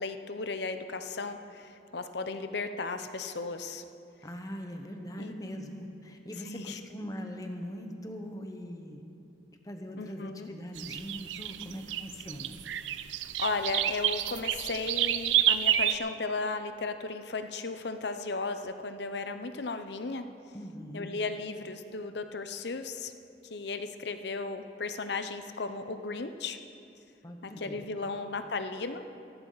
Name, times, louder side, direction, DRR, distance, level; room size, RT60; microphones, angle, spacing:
voice 1, 0.0-3.8 5.2-5.6 6.4-6.8 10.0-10.5 13.2-20.3 20.9-23.1 23.5-26.6 27.4-29.0, left 3 dB, 65° left, 9 dB, 0.7 m, -35 dB
voice 2, 4.2-9.0 9.6-12.6 20.5-21.2 27.2-27.8, equal, 20° left, 4 dB, 1.1 m, -41 dB
sound 1, 10.8-16.0, right 11 dB, 85° right, 0.5 m, -29 dB
16.0 x 14.5 x 4.0 m, 2.7 s
head